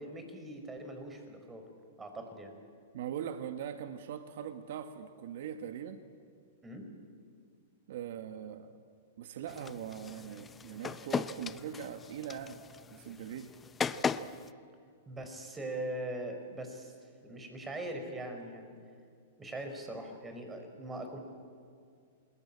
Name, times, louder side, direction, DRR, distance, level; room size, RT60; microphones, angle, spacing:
voice 1, 0.0-1.6 2.0-2.5 6.6-6.9 15.1-16.9 17.2-18.7 19.4-21.2, right 1 dB, 15° right, 5 dB, 4.9 m, -41 dB
voice 2, 2.9-6.0 7.9-8.8 9.2-12.6 12.9-13.5, right 9 dB, 65° right, 9 dB, 1.5 m, -41 dB
sound 1, 9.5-14.5, left 6 dB, 15° left, 0.8 m, -38 dB
28.0 x 20.5 x 8.7 m, 2.2 s
hypercardioid pair, 125°, 0 cm